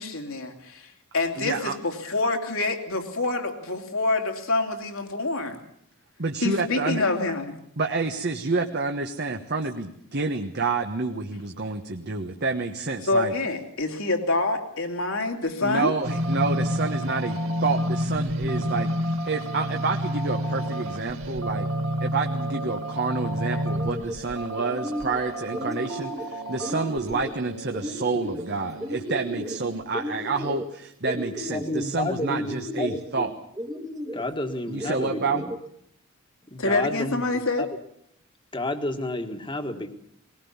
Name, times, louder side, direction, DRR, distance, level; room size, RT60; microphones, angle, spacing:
voice 1, 0.0-5.6 6.4-7.5 13.0-15.9 23.5-23.6 36.6-37.6, left 2 dB, 75° left, 3 dB, 3.0 m, -26 dB
voice 2, 1.4-1.8 6.2-7.0 7.8-13.3 15.6-18.9 19.3-21.7 22.0-33.3 34.7-35.4, right 3 dB, 50° right, 4 dB, 1.3 m, -29 dB
sound 1, 16.0-29.8, equal, 80° right, 3.8 m, -30 dB
sound 2, 23.7-24.2 24.6-25.2 25.5-26.3 26.6-27.3 27.7-28.5 28.8-29.6 29.9-30.7 31.0-31.8 32.3-33.0 33.5-34.2 34.8-35.6, equal, 15° right, 1.6 m, -34 dB
voice 3, 31.5-33.3 34.1-35.5 36.5-37.7 38.5-39.9, left 2 dB, 25° left, 6 dB, 1.8 m, -31 dB
21.0 x 19.0 x 7.2 m, 0.72 s
head